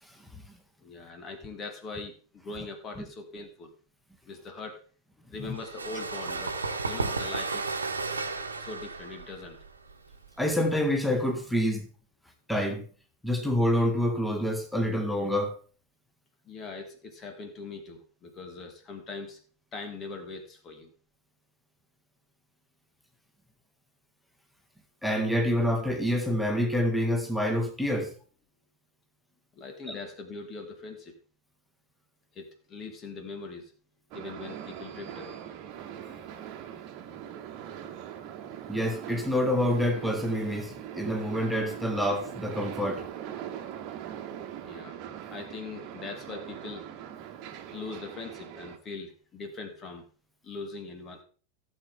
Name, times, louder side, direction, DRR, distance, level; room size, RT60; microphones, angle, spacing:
voice 1, 0.8-3.8 4.3-4.8 5.3-7.7 8.6-9.6 16.4-19.4 19.7-20.9 29.5-31.1 32.3-33.7 34.1-35.4 44.6-45.0 45.3-46.9 47.7-50.1 50.4-51.2, left 3 dB, 25° left, 1.8 m, -41 dB
sound 1, 5.5-11.0, right 3 dB, 75° right, 1.2 m, -33 dB
voice 2, 10.4-11.9 12.5-12.8 13.2-15.5 25.0-28.1 29.9-30.0 36.1-36.2 38.7-43.1, equal, ahead, 1.9 m, -27 dB
sound 2, 34.1-48.8, right 10 dB, 40° right, 1.4 m, -41 dB
16.0 x 7.8 x 3.5 m
figure-of-eight pair, 90°, 0 cm